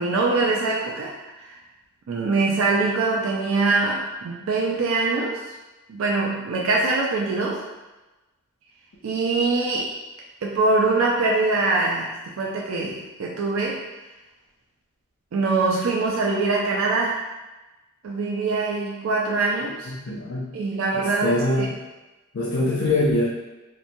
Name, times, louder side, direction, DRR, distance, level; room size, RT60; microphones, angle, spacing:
voice 1, 0.0-1.6 2.1-5.4 5.9-7.6 9.0-9.9 10.4-13.8 15.3-17.2 18.0-19.9 20.5-21.7, right 3 dB, 65° right, -2 dB, 0.4 m, -23 dB
voice 2, 19.9-20.5 20.9-21.7 22.3-23.3, left 2 dB, 50° left, -7 dB, 0.4 m, -23 dB
2.9 x 2.1 x 2.6 m, 1.1 s
head